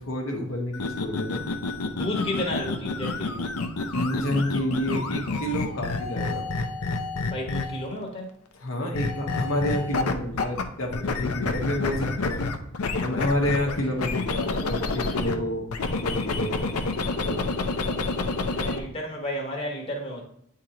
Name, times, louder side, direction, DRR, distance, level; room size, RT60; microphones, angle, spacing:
voice 1, 0.0-1.4 3.9-6.5 8.5-12.5 13.0-15.6 15.9-16.7 17.2-17.5, left 1 dB, 65° left, 0.9 m, -29 dB
sound 1, 0.7-7.9 8.9-10.6 10.9-15.4 15.7-18.8, left 3 dB, 90° left, 0.6 m, -29 dB
voice 2, 2.0-3.5 7.3-8.3 13.6-14.0 17.8-20.2, left 1 dB, 25° left, 1.1 m, -33 dB
8.9 x 3.7 x 2.9 m
head